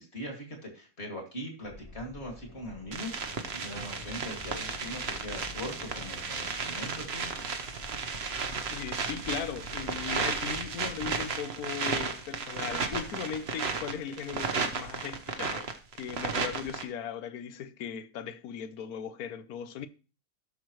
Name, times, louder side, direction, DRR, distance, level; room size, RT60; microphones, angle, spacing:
voice 1, 0.0-7.3, equal, 45° left, 2.6 m, -41 dB
sound 1, 1.6-11.2, left 2 dB, 30° left, 0.8 m, -48 dB
sound 2, 2.9-16.8, right 5 dB, 45° right, 1.2 m, -34 dB
voice 2, 8.7-15.7 16.0-19.9, left 8 dB, 75° left, 1.2 m, -38 dB
16.5 x 6.3 x 3.1 m
omnidirectional pair, 1.6 m